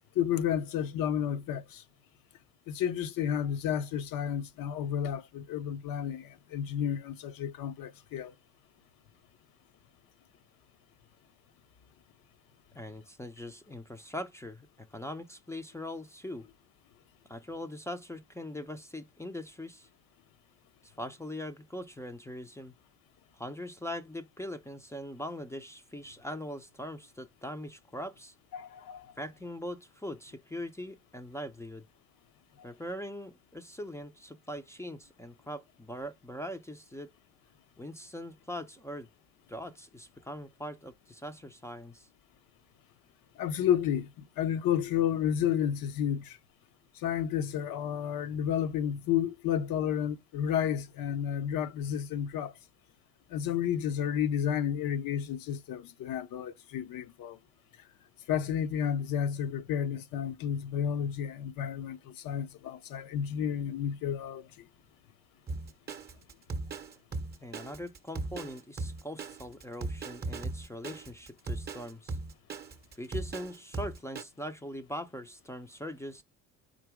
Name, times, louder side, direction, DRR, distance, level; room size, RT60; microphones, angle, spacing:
voice 1, 0.2-1.8 2.7-8.3 28.5-29.1 43.4-46.4 47.0-52.5 53.3-57.4 58.3-64.5, left 9 dB, 55° left, 0.7 m, -31 dB
voice 2, 12.7-16.5 17.3-19.9 20.8-22.7 23.4-28.3 29.2-31.8 32.6-37.1 37.8-39.1 39.5-42.1 67.4-72.2 73.0-76.2, left 1 dB, 5° left, 0.5 m, -41 dB
Drum kit, 65.5-74.2, right 3 dB, 25° right, 0.8 m, -37 dB
4.0 x 2.7 x 4.8 m
hypercardioid pair, 60°, 42 cm